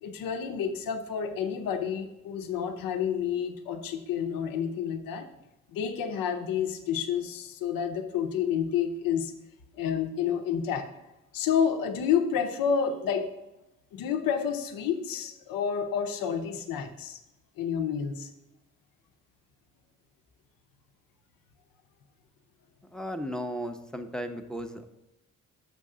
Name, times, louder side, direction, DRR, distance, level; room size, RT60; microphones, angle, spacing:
voice 1, 0.0-5.3 5.7-9.3 9.7-11.0 11.3-13.3 13.9-17.2 17.6-18.3, left 7 dB, 75° left, 7 dB, 0.7 m, -29 dB
voice 2, 22.9-24.9, equal, ahead, 5 dB, 0.7 m, -35 dB
6.6 x 5.2 x 3.7 m, 0.98 s
supercardioid pair, 50°, 34 cm